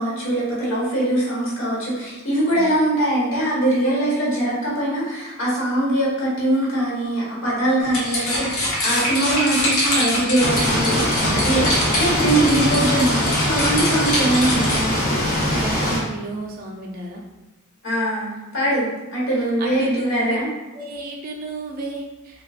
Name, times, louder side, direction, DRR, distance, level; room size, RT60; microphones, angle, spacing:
voice 1, 0.0-11.6 11.9-15.0 17.8-20.5, right 1 dB, 60° left, -6 dB, 1.3 m, -22 dB
sound 1, 7.8-15.0, left 1 dB, 80° left, 1.0 m, -24 dB
sound 2, 10.4-16.0, left 1 dB, 40° left, 0.7 m, -22 dB
voice 2, 11.2-11.7 15.5-17.2 19.3-20.4 20.7-22.4, right 2 dB, 40° right, 0 dB, 0.4 m, -32 dB
3.9 x 2.2 x 2.4 m, 1.1 s
head